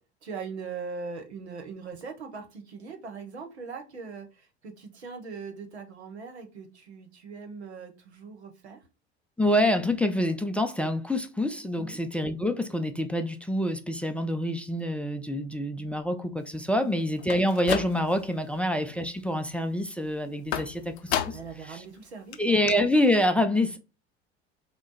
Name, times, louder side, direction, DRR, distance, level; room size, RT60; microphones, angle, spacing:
voice 1, 0.2-8.8 11.7-12.0 16.8-17.0 18.5-18.6 21.3-22.4, right 5 dB, 90° right, 0.9 m, -40 dB
voice 2, 9.4-21.8 22.4-23.8, left 1 dB, 5° left, 0.4 m, -26 dB
sound 1, 17.2-18.3 18.7-19.2 20.5-21.6 22.0-22.1 22.3-22.4 22.7-22.8, left 10 dB, 80° left, 0.6 m, -32 dB
3.6 x 2.2 x 3.9 m
hypercardioid pair, 75°, 32 cm